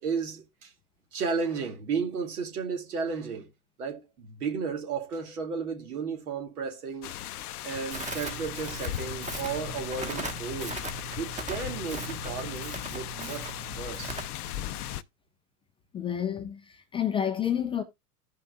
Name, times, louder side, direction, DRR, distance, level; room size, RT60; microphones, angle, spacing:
voice 1, 0.0-0.7 1.1-3.5 3.8-7.1 7.6-10.8 11.2-14.2, right 5 dB, 75° right, 2.2 m, -33 dB
sound 1, 7.0-15.0, left 12 dB, 75° left, 0.6 m, -37 dB
Crackle, 7.9-14.2, right 4 dB, 15° right, 1.2 m, -39 dB
voice 2, 15.9-17.8, left 9 dB, 15° left, 0.4 m, -29 dB
15.0 x 5.5 x 2.3 m
hypercardioid pair, 95°, 46 cm